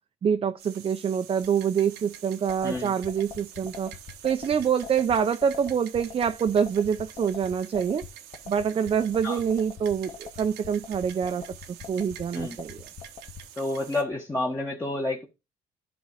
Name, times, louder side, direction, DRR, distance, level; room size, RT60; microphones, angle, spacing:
voice 1, 0.2-3.9 4.2-8.0 8.5-11.4 11.9-12.8, right 7 dB, 35° right, 0.6 m, -26 dB
sound 1, 0.6-14.0, right 10 dB, 85° right, 1.2 m, -47 dB
sound 2, 2.5-13.4, left 7 dB, 40° left, 1.5 m, -42 dB
voice 2, 13.6-15.3, left 2 dB, 15° left, 1.2 m, -29 dB
11.5 x 4.0 x 4.9 m
cardioid pair, 110°, 17 cm